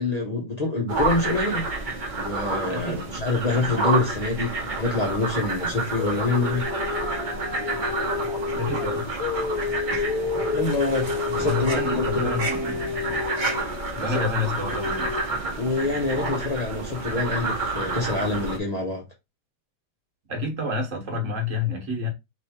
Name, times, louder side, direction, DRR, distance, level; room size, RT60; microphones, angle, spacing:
voice 1, 0.0-1.7 2.2-6.7 10.4-12.4 14.0-14.3 15.6-19.0, left 3 dB, 40° left, 0.6 m, -26 dB
sound 1, 0.9-18.6, right 3 dB, 35° right, 1.0 m, -29 dB
sound 2, 6.0-15.2, left 5 dB, 70° left, 1.0 m, -30 dB
voice 2, 8.5-9.1 11.4-13.2 14.0-15.1 20.3-22.1, left 3 dB, 50° right, 1.4 m, -29 dB
3.3 x 3.1 x 4.2 m
omnidirectional pair, 1.8 m